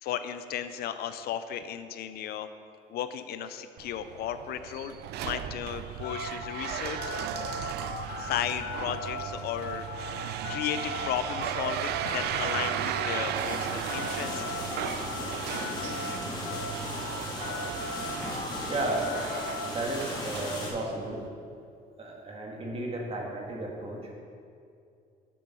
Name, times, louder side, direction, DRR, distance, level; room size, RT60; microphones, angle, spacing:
voice 1, 0.0-2.5 2.9-5.0 5.2-7.0 8.2-9.9 10.5-14.6, left 10 dB, 70° left, 11 dB, 0.5 m, -34 dB
sound 1, 3.8-21.3, right 10 dB, 75° right, 0.4 m, -36 dB
sound 2, 6.0-16.2 16.5-19.7, left 5 dB, 90° left, 1.0 m, -38 dB
sound 3, 13.3-20.7, left 1 dB, 25° left, 2.1 m, -37 dB
voice 2, 18.7-19.1 19.6-21.2 22.0-24.1, right 2 dB, 35° right, -1 dB, 1.8 m, -33 dB
7.5 x 6.8 x 5.5 m, 2.4 s
cardioid pair, 110°, 17 cm